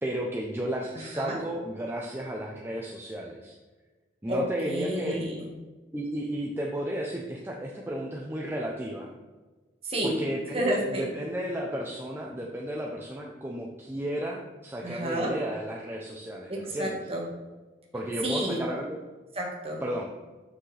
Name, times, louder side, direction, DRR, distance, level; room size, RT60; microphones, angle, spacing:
voice 1, 0.0-3.6 4.2-5.2 5.9-9.1 10.0-17.0 17.9-19.0 19.8-20.1, right 1 dB, 10° right, -1 dB, 0.6 m, -33 dB
voice 2, 0.9-1.4 4.3-5.5 9.8-10.1 10.5-11.1 14.8-15.3 16.5-17.4 18.2-18.6 19.3-19.8, right 1 dB, 30° right, -2 dB, 1.5 m, -31 dB
7.4 x 6.1 x 3.3 m, 1.2 s
head